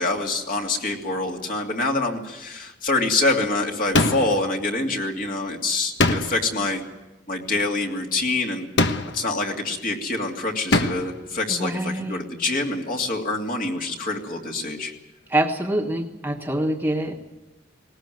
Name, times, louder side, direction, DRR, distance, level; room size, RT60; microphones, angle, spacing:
voice 1, 0.0-6.8 7.3-8.7 9.1-14.9, left 2 dB, 45° left, 2 dB, 2.8 m, -26 dB
sound 1, 3.9-4.5 6.0-6.5 8.8-9.3 10.7-11.2, left 2 dB, 65° left, 1.2 m, -22 dB
voice 2, 11.5-12.2 15.3-17.2, right 1 dB, 10° right, 3 dB, 1.4 m, -25 dB
19.0 x 19.0 x 9.5 m, 1.0 s
head